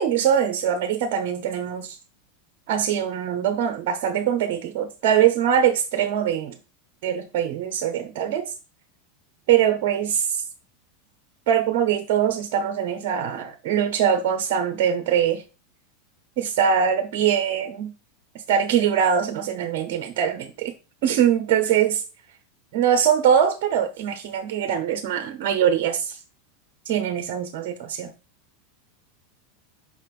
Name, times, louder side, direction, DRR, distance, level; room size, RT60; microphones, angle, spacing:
voice 1, 0.0-2.0 2.7-6.5 7.0-8.4 9.5-10.4 11.5-15.4 16.4-17.9 18.5-20.7 21.0-22.0 22.7-26.2 26.8-28.1, right 8 dB, 60° right, 0.9 m, -22 dB
5.8 x 5.7 x 3.1 m
hypercardioid pair, 95°, 0 cm